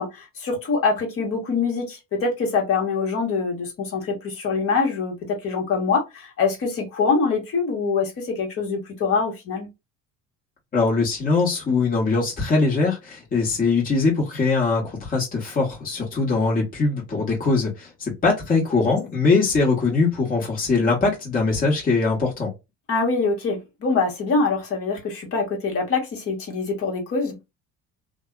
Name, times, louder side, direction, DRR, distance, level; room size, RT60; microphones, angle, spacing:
voice 1, 0.0-9.7 18.9-19.0 22.9-27.3, left 4 dB, 45° left, 1.3 m, -24 dB
voice 2, 10.7-22.5, left 4 dB, 25° left, 1.3 m, -22 dB
2.6 x 2.3 x 2.3 m
cardioid pair, 130°, 33 cm